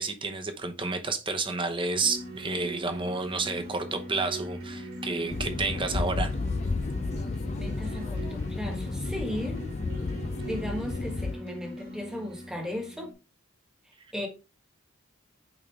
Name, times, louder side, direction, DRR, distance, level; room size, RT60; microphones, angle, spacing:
voice 1, 0.0-6.3, right 3 dB, 25° right, 0.9 m, -30 dB
sound 1, 1.9-13.1, right 1 dB, 80° right, 2.6 m, -41 dB
sound 2, 5.3-11.3, left 3 dB, 35° left, 0.4 m, -32 dB
voice 2, 7.6-9.8 10.4-13.1 14.1-14.3, left 1 dB, 5° right, 1.4 m, -36 dB
8.8 x 3.8 x 3.2 m
head